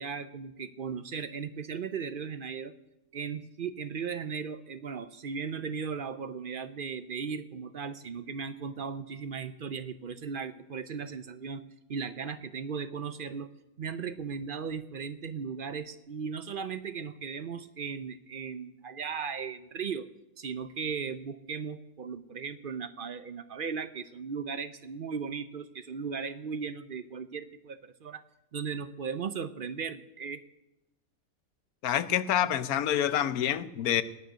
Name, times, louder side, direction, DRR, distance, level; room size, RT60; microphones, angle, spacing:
voice 1, 0.0-2.8 3.1-11.6 11.9-13.5 13.8-20.1 20.4-28.2 28.5-30.4, right 6 dB, 55° right, 12 dB, 0.6 m, -37 dB
voice 2, 31.8-34.0, left 10 dB, 80° left, 14 dB, 1.2 m, -27 dB
17.5 x 6.5 x 9.3 m, 0.92 s
omnidirectional pair, 1.6 m